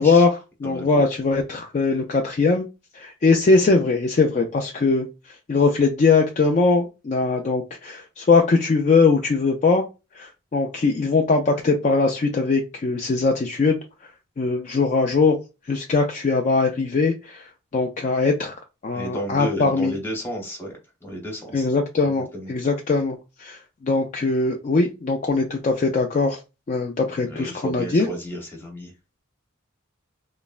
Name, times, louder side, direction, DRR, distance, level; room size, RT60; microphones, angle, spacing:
voice 1, 0.0-2.7 2.9-5.1 5.5-9.8 10.2-13.8 14.4-15.4 15.7-17.4 17.7-18.5 18.8-19.9 21.5-26.4 26.7-28.1, left 4 dB, 35° left, 2 dB, 0.3 m, -21 dB
voice 2, 0.6-1.0 18.9-20.7 21.0-21.7 22.0-22.5 27.2-28.9, equal, 10° left, -1 dB, 0.9 m, -32 dB
3.2 x 2.0 x 2.3 m, 0.27 s
head